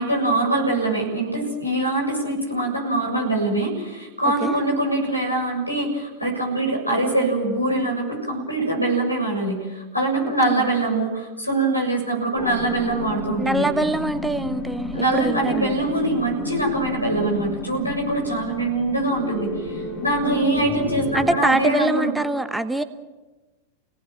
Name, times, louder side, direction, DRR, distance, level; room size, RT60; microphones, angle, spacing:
voice 1, 0.0-13.7 14.9-22.1, right 2 dB, 85° left, 1 dB, 7.2 m, -23 dB
sound 1, 12.3-21.4, left 2 dB, 35° left, 3.9 m, -32 dB
voice 2, 13.4-15.8 20.2-20.6 21.1-22.8, right 2 dB, 5° right, 10 dB, 1.1 m, -24 dB
29.5 x 18.5 x 7.5 m, 1.2 s
figure-of-eight pair, 90°, 0 cm